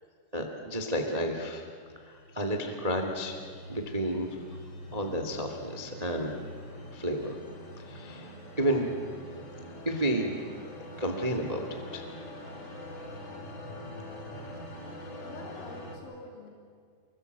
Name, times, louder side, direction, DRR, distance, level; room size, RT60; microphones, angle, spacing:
voice 1, 0.3-1.6 1.9-3.4 3.7-4.4 4.9-6.4 6.9-7.4 7.8-8.9 9.8-10.3 11.0-11.6 11.9-12.1, right 1 dB, 75° right, 4 dB, 0.3 m, -31 dB
sound 1, 1.9-16.0, left 1 dB, 30° left, 5.2 m, -44 dB
voice 2, 15.2-16.5, left 3 dB, 75° left, 0 dB, 5.7 m, -45 dB
29.5 x 22.5 x 8.2 m, 2.1 s
omnidirectional pair, 5.6 m